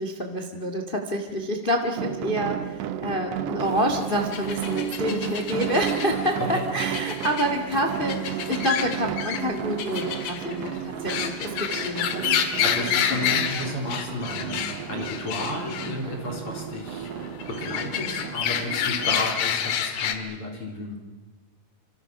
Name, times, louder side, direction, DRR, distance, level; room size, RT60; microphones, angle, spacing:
voice 1, 0.0-12.3 13.1-13.2, equal, 55° left, 5 dB, 0.5 m, -28 dB
sound 1, 2.0-19.2, right 10 dB, 75° right, 3.1 m, -33 dB
sound 2, 3.7-20.1, left 8 dB, 70° left, 3.6 m, -30 dB
voice 2, 12.6-21.0, left 1 dB, 30° left, 2 dB, 4.3 m, -33 dB
26.5 x 26.5 x 6.0 m, 1.2 s
omnidirectional pair, 5.1 m